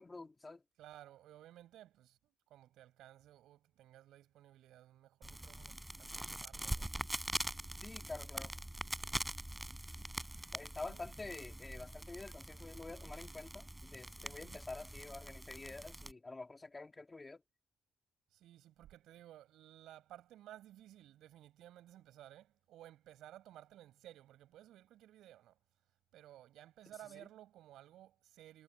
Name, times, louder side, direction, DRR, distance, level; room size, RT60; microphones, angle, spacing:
voice 1, 0.0-0.6 7.8-8.5 10.5-17.4 27.1-27.2, left 3 dB, 20° left, 2.8 m, -48 dB
voice 2, 0.8-7.0 10.8-11.2 14.2-14.6 18.3-25.6 26.1-28.6, right 13 dB, 85° right, 7.4 m, -57 dB
sound 1, 5.2-16.1, right 1 dB, 10° right, 5.2 m, -44 dB
cardioid pair, 90°, 0 cm